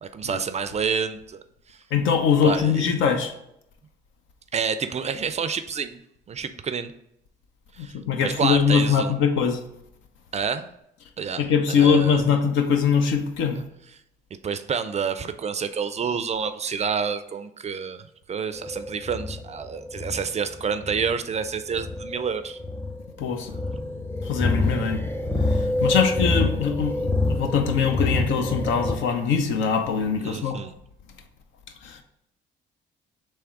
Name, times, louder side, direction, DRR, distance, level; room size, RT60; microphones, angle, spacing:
voice 1, 0.0-1.4 1.7-1.8 2.4-2.9 4.5-6.0 6.3-6.9 7.8-8.0 8.2-9.1 10.3-10.7 11.2-12.3 14.4-22.6 30.2-30.7, right 6 dB, 30° right, 11 dB, 0.4 m, -28 dB
voice 2, 1.9-3.3 7.8-9.6 11.4-13.6 23.2-23.5 24.2-25.0 25.5-30.6 31.8-32.0, left 6 dB, 70° left, 6 dB, 0.7 m, -22 dB
sound 1, 18.5-28.9, left 2 dB, 10° left, 0.6 m, -27 dB
3.5 x 3.2 x 4.6 m, 0.77 s
hypercardioid pair, 60°, 21 cm